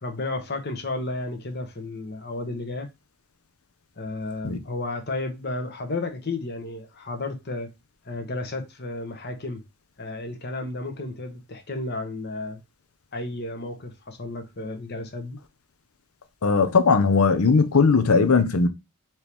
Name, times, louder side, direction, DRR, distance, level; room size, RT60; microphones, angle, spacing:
voice 1, 0.0-2.9 4.0-7.7 8.0-9.6 10.0-12.6 13.1-15.4, left 2 dB, 50° left, 1.1 m, -32 dB
voice 2, 16.4-18.7, left 4 dB, 80° left, 0.7 m, -19 dB
4.4 x 3.0 x 3.4 m
head